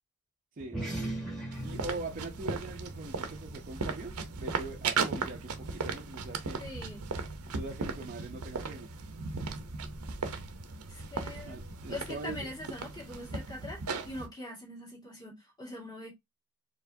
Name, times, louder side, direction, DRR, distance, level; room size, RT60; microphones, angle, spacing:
sound 1, 0.6-5.4, right 1 dB, ahead, 1.9 m, -41 dB
sound 2, 1.5-14.3, right 4 dB, 75° right, 0.7 m, -37 dB
voice 1, 1.6-6.6 7.5-8.9 11.4-12.5, right 3 dB, 35° right, 0.6 m, -42 dB
voice 2, 6.6-7.1 10.9-11.6 11.9-16.1, left 1 dB, 20° left, 1.9 m, -43 dB
4.6 x 3.0 x 2.6 m
head